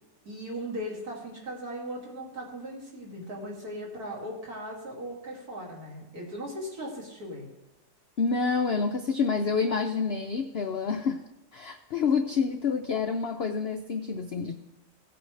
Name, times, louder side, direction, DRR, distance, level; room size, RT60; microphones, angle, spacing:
voice 1, 0.2-7.5, equal, 65° right, -3 dB, 3.0 m, -38 dB
voice 2, 8.2-11.2 11.5-14.5, left 5 dB, 70° left, 6 dB, 0.6 m, -28 dB
16.5 x 7.9 x 3.3 m, 0.96 s
omnidirectional pair, 1.8 m